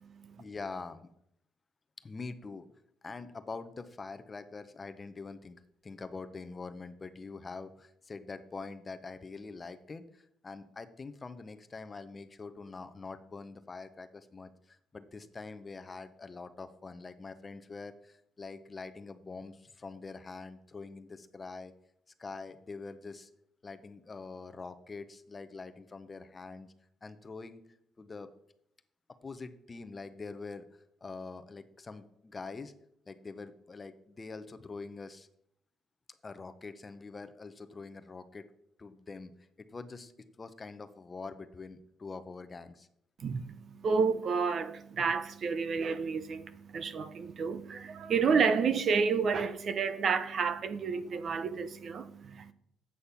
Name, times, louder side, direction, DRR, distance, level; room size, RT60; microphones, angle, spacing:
voice 1, 0.4-1.0 2.0-2.7 3.0-5.6 5.8-21.7 22.2-23.3 23.6-26.7 27.0-27.6 28.0-28.3 29.2-32.7 33.1-35.3 36.2-38.4 38.8-39.3 39.6-40.1 40.4-42.9, left 4 dB, 30° left, 0.8 m, -44 dB
voice 2, 43.2-43.5 43.8-52.5, right 5 dB, 55° right, 0.7 m, -30 dB
8.4 x 6.4 x 5.7 m
cardioid pair, 95°, 0 cm